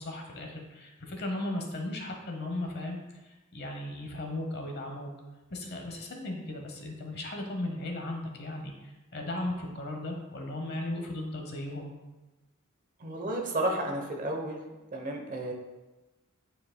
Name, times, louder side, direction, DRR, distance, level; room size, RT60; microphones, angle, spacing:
voice 1, 0.0-3.0 3.2-5.1 5.5-11.9, left 1 dB, 50° left, 2 dB, 0.9 m, -36 dB
voice 2, 13.0-14.6 14.9-15.5, right 1 dB, 40° right, 3 dB, 0.9 m, -32 dB
8.9 x 4.9 x 2.2 m, 1.1 s
head